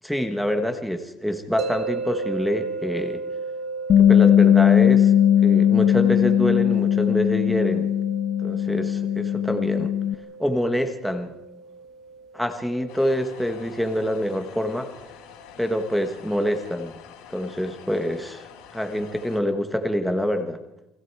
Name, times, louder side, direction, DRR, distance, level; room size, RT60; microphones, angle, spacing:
voice 1, 0.0-3.2 4.0-5.1 5.4-7.9 8.4-9.9 10.4-11.3 12.3-14.9 15.6-16.9 17.3-20.6, equal, ahead, 5 dB, 1.5 m, -26 dB
sound 1, 1.6-14.7, right 4 dB, 50° right, 1.5 m, -36 dB
Bass guitar, 3.9-10.1, left 10 dB, 45° left, 1.1 m, -18 dB
sound 2, 12.9-19.4, left 8 dB, 85° left, 5.0 m, -46 dB
29.5 x 22.0 x 4.8 m, 0.91 s
cardioid pair, 155°, 0 cm